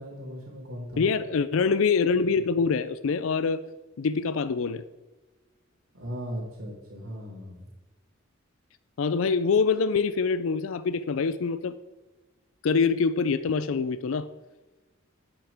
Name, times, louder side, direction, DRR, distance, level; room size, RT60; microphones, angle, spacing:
voice 1, 0.0-1.1 5.9-7.7, equal, 85° right, -4 dB, 3.2 m, -37 dB
voice 2, 1.0-3.6 4.0-4.8 9.0-11.7 12.6-14.3, left 5 dB, 75° left, 13 dB, 0.4 m, -25 dB
10.5 x 8.5 x 3.5 m, 1.1 s
head